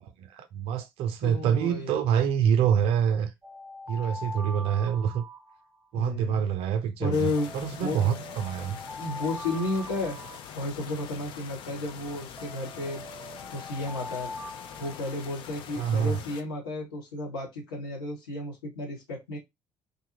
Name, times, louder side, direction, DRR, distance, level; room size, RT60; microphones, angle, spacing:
voice 1, 0.0-3.3 3.9-5.2 5.9-8.8 15.8-16.2, right 8 dB, 55° right, 0.5 m, -26 dB
voice 2, 1.2-2.0 5.9-6.4 7.0-8.2 9.0-10.2 10.5-13.0 13.5-14.3 14.8-19.4, left 2 dB, 75° left, 1.2 m, -32 dB
Alarm, 3.4-6.0 7.4-11.0 12.4-15.6, left 1 dB, 15° right, 0.7 m, -42 dB
sound 1, 7.1-16.4, left 8 dB, 50° left, 0.4 m, -44 dB
2.6 x 2.3 x 3.0 m
figure-of-eight pair, 55°, 12 cm